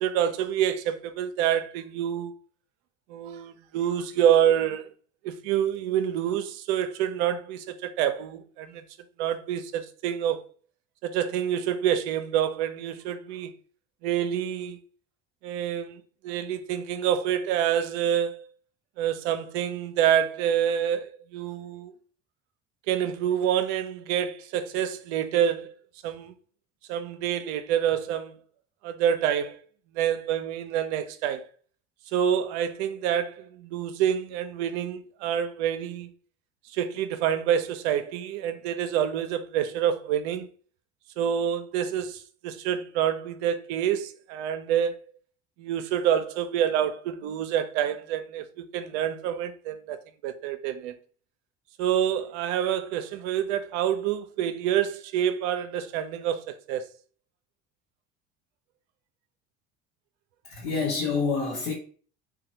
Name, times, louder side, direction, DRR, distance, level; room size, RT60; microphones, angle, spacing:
voice 1, 0.0-2.3 3.1-4.9 5.2-8.8 9.2-10.4 11.0-13.5 14.0-14.8 15.4-18.4 19.0-21.9 22.9-25.7 26.0-26.3 26.9-28.4 28.8-29.6 29.9-31.5 32.1-36.1 36.7-40.5 41.2-45.0 45.6-51.0 51.8-56.9, right 9 dB, 65° right, 0.5 m, -27 dB
voice 2, 60.4-61.7, left 4 dB, 75° left, 0.8 m, -27 dB
3.0 x 2.2 x 2.7 m
hypercardioid pair, 65°, 36 cm